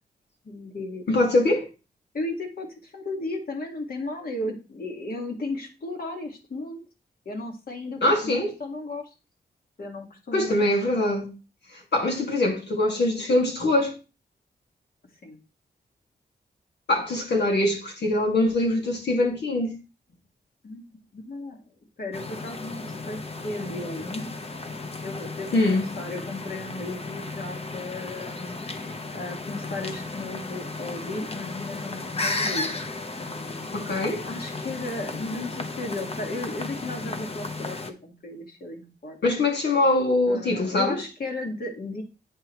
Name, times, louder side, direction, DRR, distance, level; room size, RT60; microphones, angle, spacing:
voice 1, 0.4-1.1 2.1-6.9 7.3-9.0 9.8-10.6 15.2-15.4 20.6-21.6 22.0-24.3 25.0-32.7 33.2-39.2 40.3-42.0, left 2 dB, 60° left, 1.9 m, -35 dB
voice 2, 1.1-1.7 8.0-8.5 10.3-11.3 11.9-13.9 16.9-19.7 25.5-25.9 33.7-34.3 39.2-41.0, left 2 dB, 80° left, 2.2 m, -23 dB
sound 1, 22.1-37.9, left 3 dB, 35° left, 0.9 m, -34 dB
8.6 x 5.4 x 3.1 m
cardioid pair, 75°, 17 cm